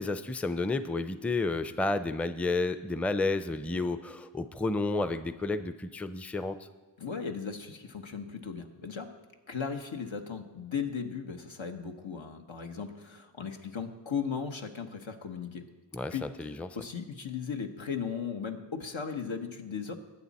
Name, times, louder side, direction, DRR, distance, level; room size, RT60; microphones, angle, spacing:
voice 1, 0.0-6.6 15.9-16.7, left 3 dB, 5° left, 11 dB, 0.5 m, -31 dB
voice 2, 7.0-9.1 9.5-15.7 16.1-16.3 16.7-19.9, left 6 dB, 80° left, 4 dB, 1.2 m, -36 dB
20.0 x 8.5 x 4.2 m, 1.3 s
wide cardioid pair, 60°, 46 cm